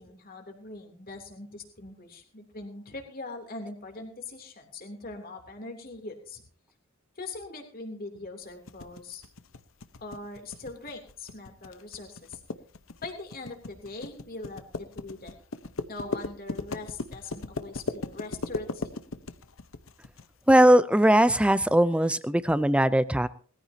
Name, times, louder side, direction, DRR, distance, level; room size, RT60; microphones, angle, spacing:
voice 1, 0.0-6.4 7.1-9.2 10.0-12.4 13.0-15.4 15.9-18.9, left 3 dB, 45° left, 3 dB, 3.2 m, -41 dB
sound 1, 8.7-20.3, left 3 dB, 70° left, 1.0 m, -37 dB
voice 2, 20.5-23.3, right 1 dB, 5° right, 15 dB, 0.5 m, -20 dB
20.5 x 14.5 x 2.9 m, 0.43 s
head